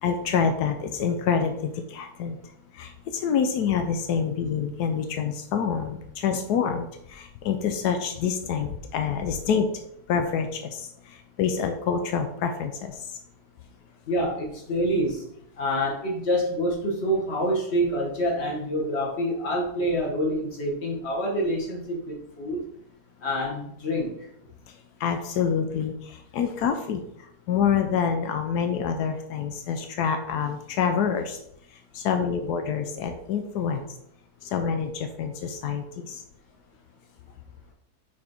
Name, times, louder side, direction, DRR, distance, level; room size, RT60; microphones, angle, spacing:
voice 1, 0.0-2.4 2.7-9.7 10.1-10.9 11.4-12.9 25.0-27.0 27.5-31.4 31.9-33.8 34.5-36.2, left 7 dB, 85° left, 6 dB, 1.2 m, -27 dB
voice 2, 14.1-15.3 15.6-22.6 23.2-24.1, equal, 45° left, -2 dB, 1.8 m, -27 dB
6.0 x 4.3 x 4.4 m, 0.73 s
omnidirectional pair, 1.7 m